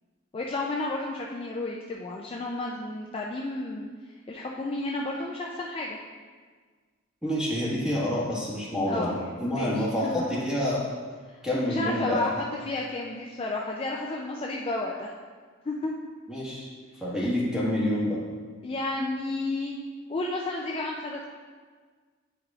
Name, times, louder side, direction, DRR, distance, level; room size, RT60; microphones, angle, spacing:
voice 1, 0.3-3.9 4.3-6.0 8.8-10.4 11.3-15.1 15.6-15.9 18.6-19.8 20.1-21.3, left 2 dB, 25° left, -2 dB, 0.3 m, -32 dB
voice 2, 7.2-10.8 11.4-12.2 16.3-16.7 17.0-18.2, left 1 dB, 5° right, -8 dB, 1.5 m, -27 dB
8.6 x 4.9 x 2.4 m, 1.5 s
head